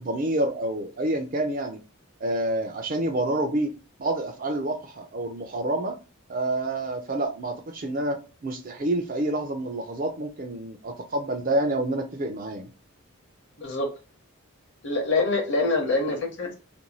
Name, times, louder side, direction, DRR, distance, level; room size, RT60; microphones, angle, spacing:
voice 1, 0.0-1.8 2.2-3.7 4.0-6.0 6.3-12.7, right 1 dB, 35° right, 0.4 m, -28 dB
voice 2, 14.8-16.5, left 3 dB, 55° left, 0.8 m, -25 dB
2.6 x 2.2 x 2.9 m
head